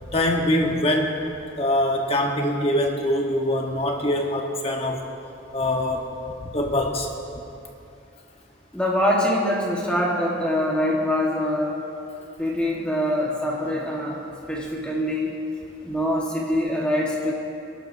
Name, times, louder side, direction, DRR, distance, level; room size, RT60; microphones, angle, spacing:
voice 1, 0.1-1.2 1.6-5.1 5.5-6.1 6.4-7.1, left 1 dB, 30° left, 2 dB, 1.1 m, -23 dB
voice 2, 8.7-11.8 12.4-14.2 14.5-15.3 15.8-17.3, left 1 dB, 5° left, -4 dB, 1.4 m, -24 dB
22.0 x 12.0 x 2.7 m, 2.7 s
head